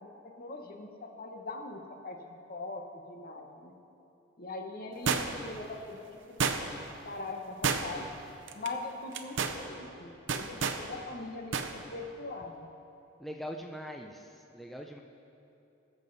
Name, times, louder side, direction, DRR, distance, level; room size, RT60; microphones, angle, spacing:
voice 1, 0.0-2.2 2.5-3.8 4.4-6.4 7.0-8.1 8.5-12.7, left 2 dB, 50° left, 3 dB, 1.1 m, -41 dB
sound 1, 5.1-5.6 6.4-6.9 7.6-8.1 8.5-8.7 9.1-9.6 10.3-10.8 11.5-11.7 12.0-12.1, right 5 dB, 70° right, 0.7 m, -30 dB
voice 2, 13.2-15.0, equal, ahead, 1 dB, 0.4 m, -42 dB
19.5 x 7.5 x 4.0 m, 2.8 s
head